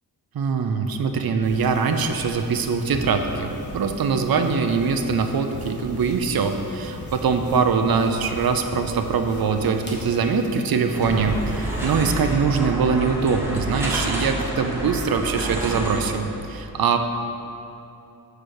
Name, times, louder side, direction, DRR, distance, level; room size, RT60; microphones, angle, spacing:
voice 1, 0.3-17.0, right 5 dB, 70° right, 6 dB, 0.6 m, -23 dB
sound 1, 1.4-12.1, equal, 30° left, 1.2 m, -38 dB
sound 2, 10.9-16.0, right 1 dB, 5° right, 1.1 m, -29 dB
5.9 x 4.9 x 6.5 m, 2.8 s
wide cardioid pair, 125°, 38 cm